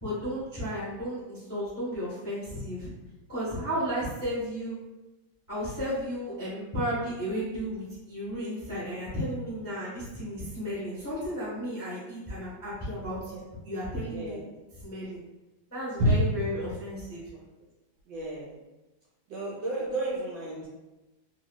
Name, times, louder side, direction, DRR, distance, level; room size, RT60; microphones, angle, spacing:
voice 1, 0.0-2.9 3.3-4.8 5.5-13.4 13.6-14.4 14.8-15.2 15.7-17.2, equal, 15° left, -9 dB, 0.4 m, -33 dB
voice 2, 14.1-14.5 16.0-16.2 18.1-18.5 19.3-20.7, right 1 dB, 70° right, -4 dB, 1.1 m, -30 dB
3.0 x 2.6 x 2.2 m, 1.1 s
omnidirectional pair, 2.3 m